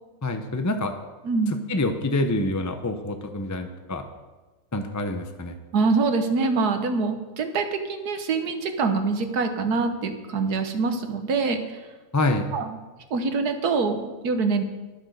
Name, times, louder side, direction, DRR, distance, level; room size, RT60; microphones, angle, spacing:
voice 1, 0.2-0.9 1.7-4.0 4.7-5.5 12.1-12.5, left 2 dB, 15° left, 6 dB, 0.6 m, -26 dB
voice 2, 1.2-1.6 5.7-11.8 12.5-12.8 13.1-14.6, right 4 dB, 75° right, 7 dB, 1.7 m, -25 dB
11.5 x 9.7 x 6.6 m, 1.2 s
omnidirectional pair, 1.7 m